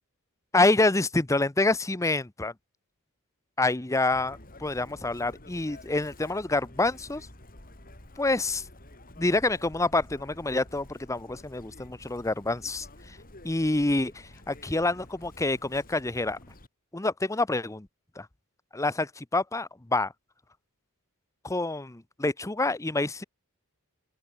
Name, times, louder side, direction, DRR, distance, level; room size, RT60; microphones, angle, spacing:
voice 1, 0.5-2.5 3.6-7.3 8.2-8.6 9.2-13.2 13.4-16.4 16.9-17.9 18.2-18.3 18.7-20.1 21.4-23.2, left 2 dB, 15° left, 0.7 m, -27 dB
Chirp tweet, 4.1-16.7, left 1 dB, 40° left, 5.0 m, -50 dB
open air
head